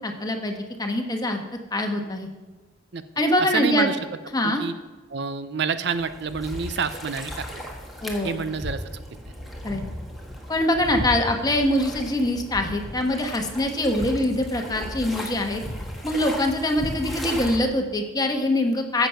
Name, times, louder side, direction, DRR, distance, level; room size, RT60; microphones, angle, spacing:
voice 1, 0.0-1.4 1.7-2.3 3.2-3.9 4.3-4.6 8.0-8.4 9.6-9.8 10.5-15.6 16.0-19.1, left 1 dB, 20° left, 3 dB, 1.3 m, -24 dB
voice 2, 3.5-4.0 4.4-4.7 5.1-7.5 8.2-9.0, right 5 dB, 60° right, 12 dB, 0.6 m, -28 dB
sound 1, 5.9-17.6, equal, ahead, 1.5 m, -35 dB
14.5 x 7.1 x 5.7 m, 1.2 s
head